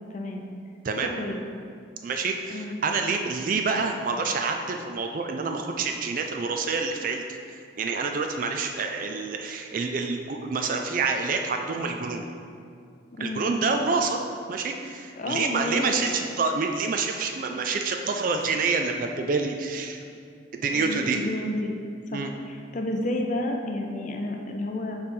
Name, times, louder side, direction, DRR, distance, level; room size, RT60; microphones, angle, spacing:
voice 1, 0.1-0.5 1.0-1.4 2.5-2.7 13.1-13.5 15.2-16.2 20.7-21.7 22.1-25.0, left 1 dB, 40° left, 2 dB, 0.5 m, -31 dB
voice 2, 2.0-7.2 7.5-12.3 13.2-14.2 14.5-20.0 20.5-21.3 22.1-22.3, right 4 dB, 45° right, 4 dB, 0.3 m, -27 dB
7.2 x 3.3 x 5.2 m, 2.3 s
head